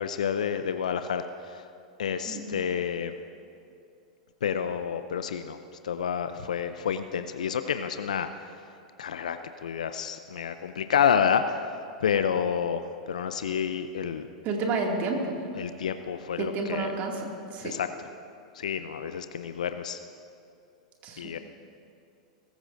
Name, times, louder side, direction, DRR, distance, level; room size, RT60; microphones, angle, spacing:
voice 1, 0.0-1.6 2.0-3.2 4.4-5.6 5.8-8.3 9.0-11.6 12.0-14.2 15.6-16.9 17.6-17.9 18.6-20.0 21.2-21.4, left 7 dB, 80° left, 10 dB, 0.5 m, -29 dB
voice 2, 14.4-15.4 16.4-17.7 21.0-21.2, right 3 dB, 45° right, 1 dB, 2.3 m, -30 dB
20.5 x 14.5 x 2.6 m, 2.5 s
hypercardioid pair, 100°, 4 cm